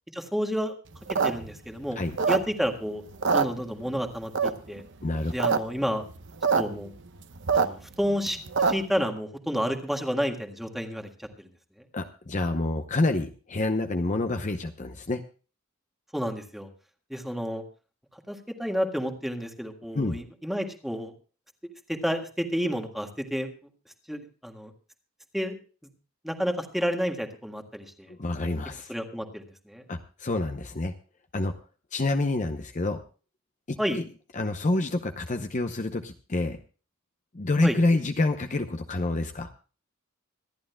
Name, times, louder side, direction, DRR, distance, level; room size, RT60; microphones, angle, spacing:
voice 1, 0.1-0.8 1.2-2.0 2.3-3.0 3.3-4.8 5.3-6.0 6.6-6.9 7.5-11.5 16.1-16.7 17.1-17.6 18.3-21.1 21.9-23.5 24.1-24.7 25.3-25.6 26.2-28.1 28.9-29.8 33.8-34.0 37.6-37.8, equal, ahead, 4 dB, 1.7 m, -30 dB
sound 1, 0.9-2.8 3.1-4.0 4.3-4.8 5.2-5.6 5.8-5.9 6.1-6.6 7.0-9.0, right 5 dB, 60° right, 0.9 m, -24 dB
voice 2, 5.0-5.4 11.9-15.2 19.9-20.2 28.1-28.9 29.9-30.9 31.3-31.5 31.9-33.0 33.7-34.0 34.3-36.6 37.3-39.5, left 2 dB, 35° left, 7 dB, 0.8 m, -27 dB
26.0 x 11.0 x 2.2 m, 0.37 s
head